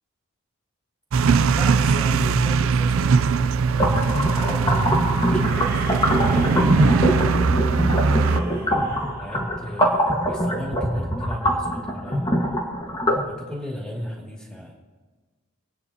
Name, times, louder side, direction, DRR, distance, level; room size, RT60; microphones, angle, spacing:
sound 1, 1.1-8.4, right 5 dB, 70° right, 0.4 m, -21 dB
voice 1, 1.5-7.4 8.3-14.7, equal, 5° left, -3 dB, 2.4 m, -36 dB
sound 2, 3.7-13.2, equal, 20° left, 1.5 m, -23 dB
sound 3, 5.4-10.1, right 2 dB, 45° right, 2.0 m, -36 dB
26.5 x 9.5 x 2.9 m, 1.3 s
head